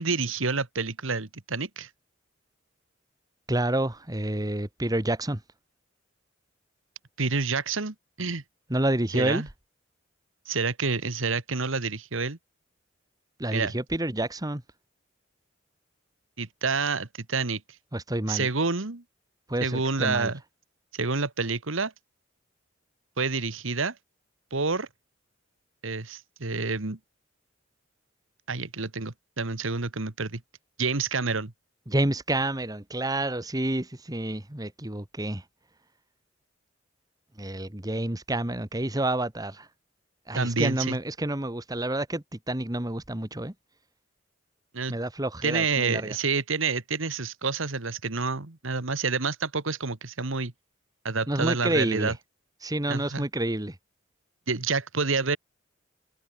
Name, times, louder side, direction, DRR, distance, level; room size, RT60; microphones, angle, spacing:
voice 1, 0.0-1.9 7.2-8.4 9.1-9.5 10.5-12.4 13.5-13.7 16.4-17.6 18.3-19.0 19.6-20.4 20.9-21.9 23.2-23.9 24.5-24.9 25.8-27.0 28.5-30.4 30.8-31.5 40.3-41.0 44.7-45.0 45.4-50.5 51.0-52.1 52.9-53.2 54.5-55.4, right 4 dB, 80° right, 1.7 m, -28 dB
voice 2, 3.5-5.4 8.7-9.4 13.4-14.6 17.9-18.5 19.5-20.3 31.9-35.4 37.4-39.7 40.3-43.5 44.9-46.2 51.3-52.1 52.6-53.8, right 1 dB, 20° right, 1.5 m, -29 dB
head